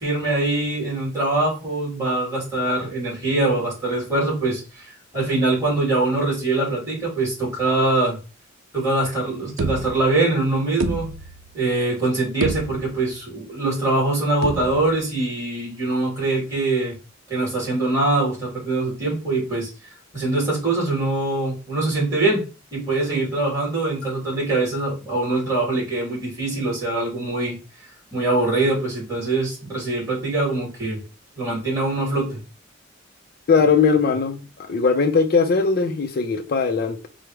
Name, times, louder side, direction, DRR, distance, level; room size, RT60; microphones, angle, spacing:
voice 1, 0.0-4.9 5.1-8.2 8.7-11.1 11.5-16.9 17.3-19.7 20.1-22.4 22.7-27.6 28.1-31.0 31.4-32.4, right 2 dB, 15° right, 2.6 m, -23 dB
sound 1, 9.6-10.3 10.8-11.6 12.0-12.1 12.4-13.2 14.4-15.1, right 3 dB, 85° right, 0.5 m, -29 dB
voice 2, 33.5-34.4 34.7-37.1, left 5 dB, 50° left, 0.4 m, -19 dB
4.7 x 2.1 x 4.7 m
head